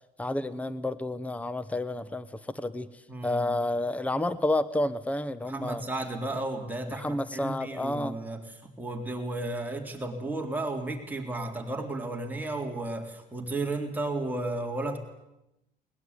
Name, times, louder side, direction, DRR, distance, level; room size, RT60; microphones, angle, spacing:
voice 1, 0.2-5.8 6.9-8.2, left 1 dB, 10° left, 15 dB, 1.1 m, -30 dB
voice 2, 3.1-3.6 5.4-15.0, right 2 dB, 10° right, 1 dB, 3.8 m, -33 dB
21.0 x 20.5 x 9.8 m, 0.89 s
cardioid pair, 110°, 17 cm